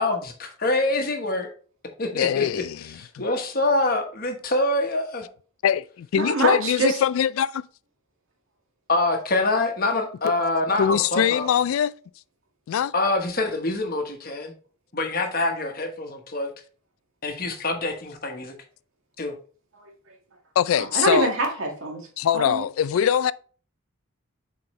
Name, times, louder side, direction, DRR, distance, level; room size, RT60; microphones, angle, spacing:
voice 1, 0.0-1.5 2.0-2.6 3.0-5.3 8.9-11.5 12.9-14.5 14.9-16.5 17.2-18.5 19.2-19.3, left 2 dB, 45° left, 1.1 m, -25 dB
voice 2, 2.1-3.2 5.6-7.6 10.2-10.3 10.8-11.9 12.7-12.9 20.6-21.3 22.2-23.3, left 9 dB, 85° left, 0.3 m, -23 dB
voice 3, 6.2-7.0 19.7-20.2 20.7-22.1 22.3-22.7, right 2 dB, 85° right, 1.9 m, -25 dB
7.5 x 4.3 x 3.1 m
head